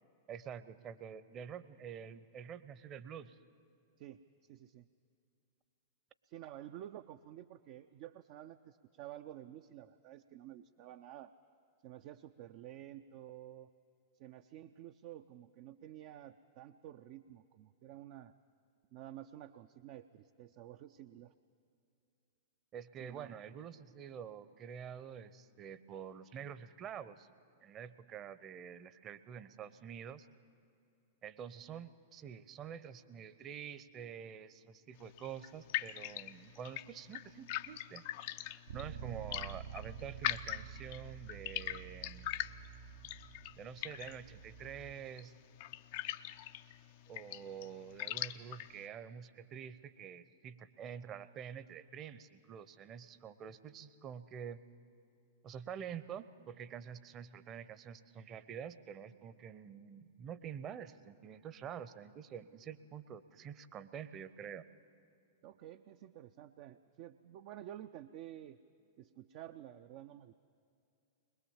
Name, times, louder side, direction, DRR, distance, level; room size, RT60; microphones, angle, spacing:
voice 1, 0.3-3.4 22.7-27.3 27.6-30.3 31.2-38.0 38.4-42.3 43.6-45.3 47.1-54.6 55.4-64.6, right 8 dB, 30° right, 14 dB, 0.8 m, -47 dB
voice 2, 4.5-4.9 6.2-11.3 11.8-13.7 14.2-18.3 18.9-21.3 23.0-23.4 65.4-68.6 69.0-70.3, right 12 dB, 45° right, 9 dB, 0.5 m, -51 dB
sound 1, 34.9-48.9, left 14 dB, 50° left, 0.5 m, -43 dB
Bass guitar, 38.7-44.9, right 6 dB, 65° right, 1.0 m, -49 dB
21.5 x 21.0 x 7.3 m, 2.6 s
figure-of-eight pair, 95°, 0 cm